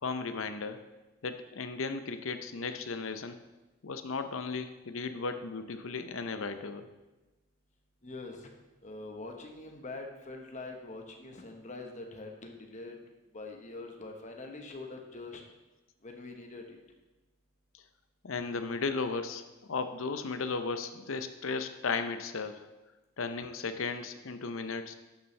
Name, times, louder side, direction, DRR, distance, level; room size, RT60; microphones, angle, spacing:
voice 1, 0.0-0.8 1.2-3.4 3.8-6.9 18.2-19.4 19.7-22.7 23.2-24.9, left 4 dB, 75° left, 9 dB, 0.7 m, -35 dB
voice 2, 8.0-8.5 8.8-13.0 13.3-15.4 16.0-16.8, left 2 dB, 35° left, 2 dB, 1.1 m, -44 dB
11.0 x 6.9 x 3.3 m, 1.1 s
head